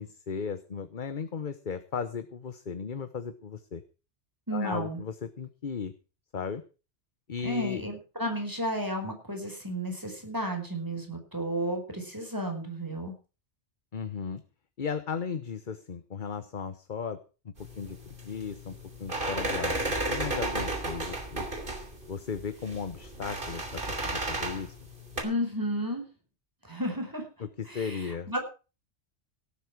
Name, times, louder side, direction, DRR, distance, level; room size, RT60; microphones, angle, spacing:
voice 1, 0.0-3.8 4.5-5.9 6.3-6.6 7.3-7.8 13.9-14.4 14.8-17.2 17.8-19.8 20.1-21.5 22.1-24.7 27.4-28.3, left 6 dB, 45° left, 10 dB, 1.1 m, -36 dB
voice 2, 4.5-5.0 7.4-13.1 25.2-26.0 26.6-27.3 27.7-28.4, equal, 15° right, 4 dB, 4.9 m, -32 dB
sound 1, 17.6-25.2, right 2 dB, 45° right, 3.4 m, -33 dB
17.5 x 8.7 x 5.9 m, 0.34 s
omnidirectional pair, 1.2 m